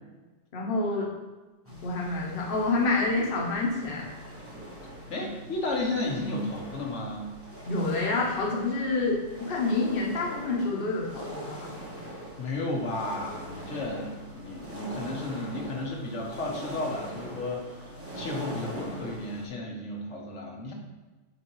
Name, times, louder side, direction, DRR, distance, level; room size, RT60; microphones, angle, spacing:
voice 1, 0.5-1.1 1.8-4.1 7.7-11.7, left 3 dB, 55° left, -2 dB, 1.1 m, -28 dB
sound 1, 1.6-19.5, equal, 15° right, 1.0 m, -42 dB
voice 2, 5.1-7.3 12.4-20.7, left 2 dB, 85° left, -1 dB, 1.4 m, -33 dB
6.8 x 4.5 x 3.1 m, 1.2 s
omnidirectional pair, 1.2 m